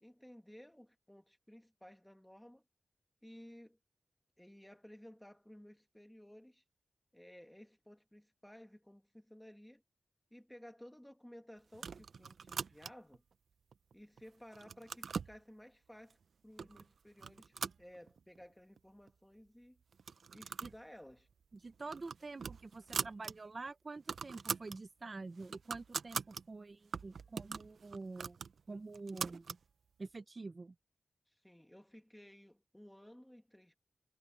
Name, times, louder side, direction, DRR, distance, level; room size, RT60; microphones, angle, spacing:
voice 1, 0.0-2.6 3.2-3.8 4.4-6.6 7.1-9.8 10.3-13.2 13.9-16.2 16.4-19.8 20.3-21.3 31.3-33.8, equal, 5° left, 1.7 m, -56 dB
sound 1, 11.7-13.2 13.7-14.2 14.5-15.4 16.1-16.2 16.6-16.9 17.2-18.4 18.8-18.9 19.1-19.2 19.9-20.8 21.1-21.3 21.7-23.3 23.7-23.8 24.0-24.8 25.2-26.4 26.9-29.6, right 6 dB, 85° right, 0.6 m, -42 dB
voice 2, 21.6-28.4 28.7-29.5 30.0-30.7, right 3 dB, 40° right, 0.8 m, -47 dB
wide cardioid pair, 120°, 0 cm